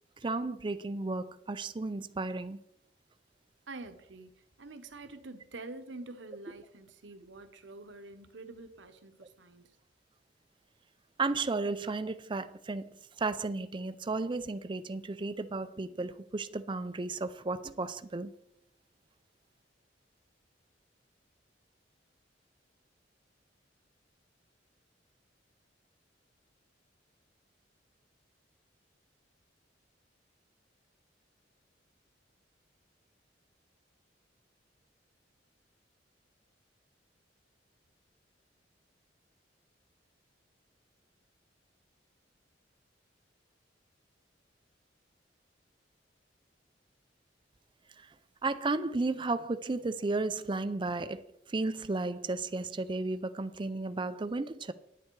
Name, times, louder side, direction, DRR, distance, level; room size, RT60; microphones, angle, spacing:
voice 1, 0.2-2.6 11.2-18.3 48.0-48.1 48.4-51.2 51.5-54.7, right 3 dB, 25° right, 0.5 m, -34 dB
voice 2, 3.7-9.7, right 2 dB, 80° right, 1.0 m, -47 dB
9.6 x 9.5 x 4.7 m
head